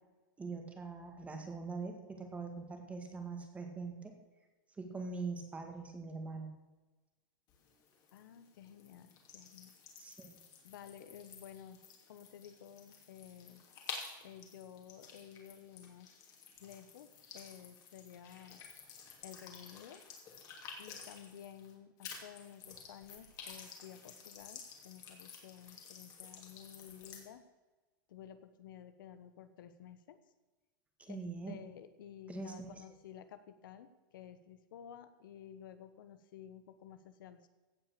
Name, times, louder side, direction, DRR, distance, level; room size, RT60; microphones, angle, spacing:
voice 1, 0.4-4.1 4.8-6.5 10.0-10.5 31.0-31.6 32.3-32.8, right 4 dB, 10° right, 4 dB, 1.9 m, -43 dB
sound 1, 7.5-21.7 22.0-27.2, left 6 dB, 30° left, 2.7 m, -52 dB
voice 2, 8.1-9.8 10.6-11.8 12.1-13.6 14.2-16.2 16.6-18.6 19.2-20.0 20.8-27.4 28.1-30.2 31.1-37.5, left 9 dB, 70° left, 11 dB, 1.1 m, -53 dB
16.0 x 5.8 x 6.9 m, 1.2 s
supercardioid pair, 150°, 11 cm